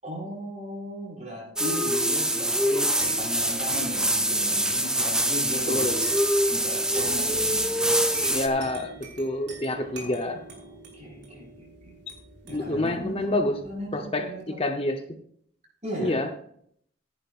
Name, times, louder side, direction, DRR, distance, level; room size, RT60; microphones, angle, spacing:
voice 1, 0.0-5.9 6.5-7.9 9.8-10.3 10.6-11.9 12.5-13.3 13.6-14.6 15.8-16.1, equal, 35° right, -3 dB, 5.2 m, -36 dB
sound 1, 1.6-8.5, right 1 dB, 5° right, 0.6 m, -24 dB
sound 2, 3.0-14.1, right 3 dB, 60° right, 3.7 m, -44 dB
voice 2, 5.7-6.0 8.3-10.4 12.5-13.6 13.9-14.3 14.6-15.0 16.0-16.3, left 1 dB, 30° left, 4 dB, 0.8 m, -27 dB
14.5 x 10.5 x 2.5 m, 0.66 s
head